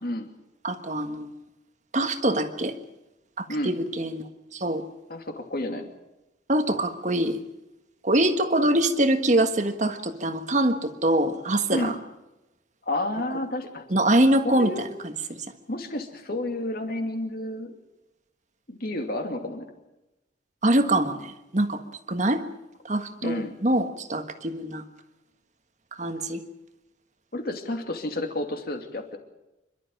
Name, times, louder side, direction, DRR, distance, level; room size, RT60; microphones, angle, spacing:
voice 1, 0.6-1.4 1.9-2.7 3.4-4.8 6.5-7.4 8.0-11.9 13.9-15.4 20.6-21.8 22.1-22.4 22.8-24.8 25.9-26.4, right 1 dB, 40° right, 7 dB, 1.5 m, -24 dB
voice 2, 5.1-5.9 11.7-12.0 12.9-13.8 14.4-14.8 15.7-17.7 18.7-19.7 23.2-23.5 27.3-29.2, left 1 dB, 50° left, 4 dB, 2.6 m, -30 dB
27.0 x 12.5 x 9.1 m, 0.98 s
head